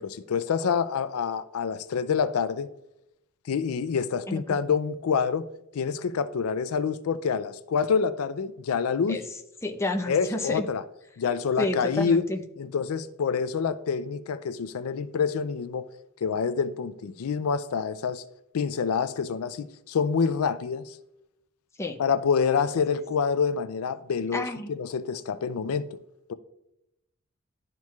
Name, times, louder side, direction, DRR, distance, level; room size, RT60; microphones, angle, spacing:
voice 1, 0.0-2.7 3.5-5.5 5.7-9.2 10.1-10.8 11.2-12.3 12.6-15.9 16.2-18.2 18.5-21.0 22.0-26.0 26.3-26.4, left 6 dB, 90° left, 0.4 m, -27 dB
voice 2, 9.6-10.6 11.6-12.4 21.8-22.0 24.3-24.7, left 2 dB, 15° left, 0.5 m, -30 dB
12.0 x 4.5 x 2.3 m
head